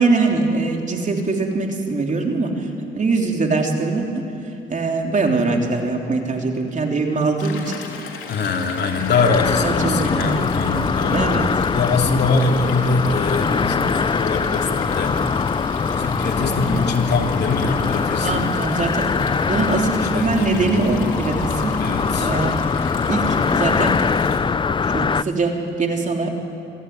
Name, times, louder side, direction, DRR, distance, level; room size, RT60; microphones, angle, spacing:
voice 1, 0.0-2.7 3.0-4.3 4.7-7.8 9.6-10.3 11.1-11.5 12.6-12.7 16.4-16.6 18.2-19.2 19.5-21.8 22.2-22.6 23.1-24.0 24.9-26.4, right 3 dB, 40° right, 2 dB, 3.5 m, -22 dB
Stream, 7.4-24.4, left 6 dB, 80° left, 3.4 m, -36 dB
voice 2, 8.3-11.3 11.7-15.2 15.9-18.5 20.0-20.8 21.8-22.3, left 4 dB, 60° left, 2 dB, 3.0 m, -23 dB
sound 1, 8.9-25.2, left 5 dB, 25° left, 0.5 m, -22 dB
27.5 x 15.5 x 9.6 m, 2.7 s
cardioid pair, 90°, 20 cm